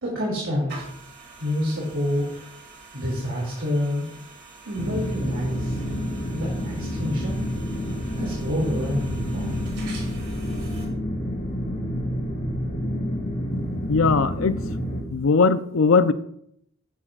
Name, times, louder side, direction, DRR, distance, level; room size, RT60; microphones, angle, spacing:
voice 1, 0.0-0.9 1.4-2.3 2.9-4.1 4.6-5.8 6.3-7.4 8.2-9.6, left 1 dB, 75° right, -4 dB, 2.7 m, -28 dB
sound 1, 0.7-10.9, right 3 dB, 55° right, 2.9 m, -45 dB
sound 2, 4.8-15.0, equal, 45° left, 2.5 m, -29 dB
voice 2, 13.9-14.6 15.1-16.1, left 4 dB, 70° left, 13 dB, 0.5 m, -19 dB
11.0 x 9.9 x 2.5 m, 0.72 s
head